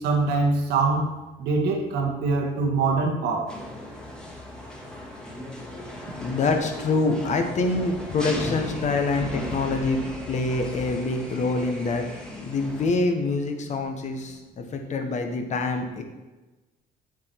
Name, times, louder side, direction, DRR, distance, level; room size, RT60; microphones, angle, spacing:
voice 1, 0.0-3.6, right 3 dB, 80° right, 1 dB, 1.6 m, -24 dB
sound 1, 3.5-12.9, left 1 dB, 5° left, 1.6 m, -37 dB
voice 2, 6.2-10.0 10.3-12.0 12.4-16.0, left 3 dB, 45° left, 5 dB, 1.2 m, -25 dB
7.4 x 6.1 x 4.6 m, 1.1 s
cardioid pair, 110°, 17 cm